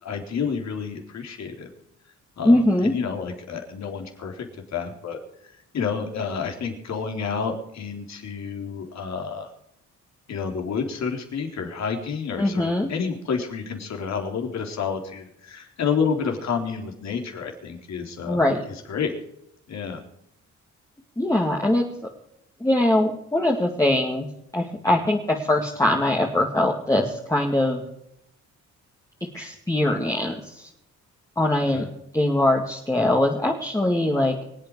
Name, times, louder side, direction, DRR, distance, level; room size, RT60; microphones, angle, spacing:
voice 1, 0.0-1.7 2.4-4.5 4.7-5.2 5.7-9.5 10.3-19.1 19.7-20.0 31.7-31.9, left 6 dB, 60° left, 3 dB, 3.8 m, -29 dB
voice 2, 2.4-2.9 12.4-12.9 18.3-18.6 21.2-22.1 22.6-24.3 24.5-27.8 29.3-30.7 31.4-31.8 32.1-34.3, left 1 dB, 10° left, -1 dB, 2.3 m, -22 dB
25.0 x 8.7 x 4.8 m, 0.80 s
cardioid pair, 90°, 30 cm